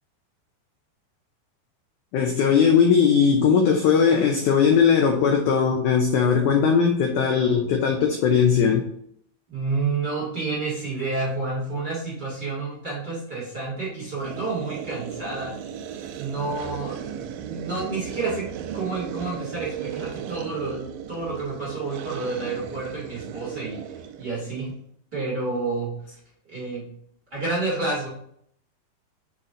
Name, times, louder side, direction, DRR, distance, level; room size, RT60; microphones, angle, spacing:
voice 1, 2.1-8.8, left 6 dB, 85° left, 3 dB, 1.7 m, -19 dB
voice 2, 9.5-15.5 16.1-18.5 18.7-24.7 25.1-26.0 26.5-26.9 27.3-28.1, right 3 dB, 45° right, -6 dB, 1.4 m, -29 dB
sound 1, 14.2-24.6, right 9 dB, 85° right, 2.5 m, -36 dB
6.7 x 4.4 x 3.7 m, 0.68 s
omnidirectional pair, 4.4 m